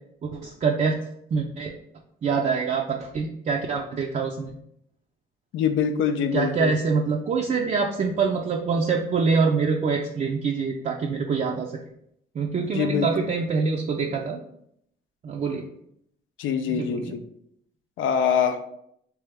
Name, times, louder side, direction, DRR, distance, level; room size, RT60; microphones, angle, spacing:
voice 1, 0.2-1.0 1.3-1.7 2.2-4.5 6.3-11.7 12.4-14.4 15.2-15.7 16.7-17.2, right 5 dB, 40° right, 0 dB, 0.4 m, -25 dB
voice 2, 5.5-6.7 12.7-13.1 16.4-17.2 18.0-18.6, left 7 dB, 85° left, 8 dB, 0.5 m, -24 dB
3.3 x 3.0 x 3.4 m, 0.73 s
cardioid pair, 90°, 20 cm